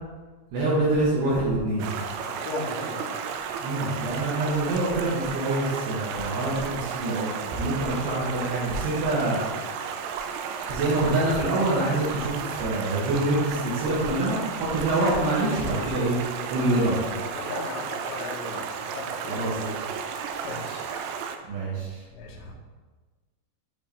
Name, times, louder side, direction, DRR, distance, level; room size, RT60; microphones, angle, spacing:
voice 1, 0.5-1.9 3.6-9.4 10.7-16.2 16.5-17.0 19.3-19.8 21.5-22.0, right 2 dB, 70° right, -7 dB, 2.8 m, -26 dB
Stream, 1.8-21.4, right 6 dB, 85° right, 2.9 m, -33 dB
voice 2, 2.2-3.2 17.3-19.4 20.4-20.9 22.1-22.5, left 4 dB, 85° left, -1 dB, 3.2 m, -37 dB
8.5 x 4.3 x 3.4 m, 1.3 s
omnidirectional pair, 5.1 m